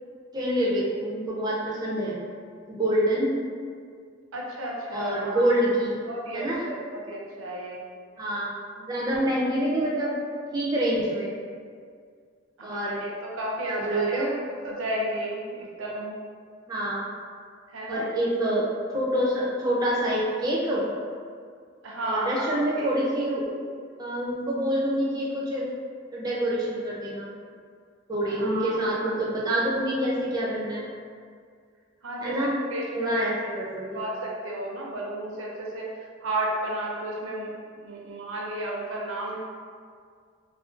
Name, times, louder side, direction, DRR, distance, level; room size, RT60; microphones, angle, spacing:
voice 1, 0.3-2.2 2.7-3.4 4.9-6.0 6.3-6.6 8.2-8.5 8.8-10.2 10.5-11.3 12.6-13.1 13.6-14.4 16.7-17.1 17.9-18.7 18.9-20.8 22.0-23.5 24.0-25.7 26.1-27.3 28.1-30.9 32.2-32.5 32.9-34.0, right 1 dB, 20° right, -5 dB, 0.4 m, -26 dB
voice 2, 4.3-5.5 6.1-7.8 12.6-14.3 14.6-16.2 17.7-18.1 21.8-22.9 28.3-29.1 32.0-32.4 32.7-33.3 33.9-35.9 36.2-37.5 37.8-39.4, right 1 dB, 80° right, -3 dB, 0.5 m, -33 dB
2.4 x 2.1 x 2.4 m, 2.1 s
head